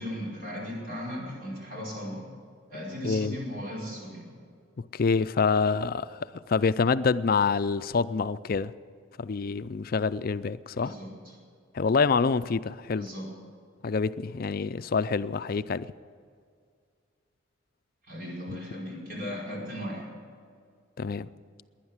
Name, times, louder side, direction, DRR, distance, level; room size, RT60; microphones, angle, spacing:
voice 1, 0.0-2.2 2.7-4.3 10.7-11.3 12.9-13.3 18.1-20.0, equal, 45° right, -3 dB, 5.0 m, -37 dB
voice 2, 3.0-3.4 4.8-8.7 9.2-10.9 11.7-13.1 13.8-15.9 21.0-21.3, left 5 dB, 50° left, 14 dB, 0.4 m, -26 dB
19.5 x 10.5 x 7.3 m, 2.1 s
head